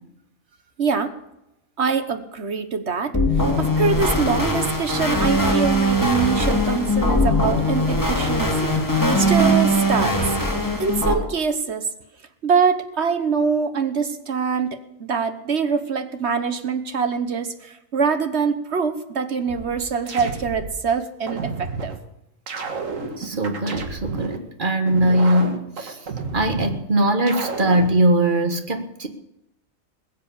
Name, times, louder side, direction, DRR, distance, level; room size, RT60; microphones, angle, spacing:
voice 1, 0.8-1.1 1.8-3.2 3.6-10.3 10.8-11.9 12.4-21.9, right 5 dB, 55° right, 9 dB, 1.5 m, -24 dB
sound 1, 3.1-11.1, equal, 15° left, 2.3 m, -20 dB
sound 2, 19.5-20.8 21.3-22.0 22.5-24.4 24.9-26.8 27.3-28.0, right 4 dB, 75° right, 1.9 m, -31 dB
voice 2, 23.2-26.0 26.3-29.1, right 1 dB, 40° right, 6 dB, 1.7 m, -21 dB
21.0 x 7.6 x 7.2 m, 0.86 s
omnidirectional pair, 1.4 m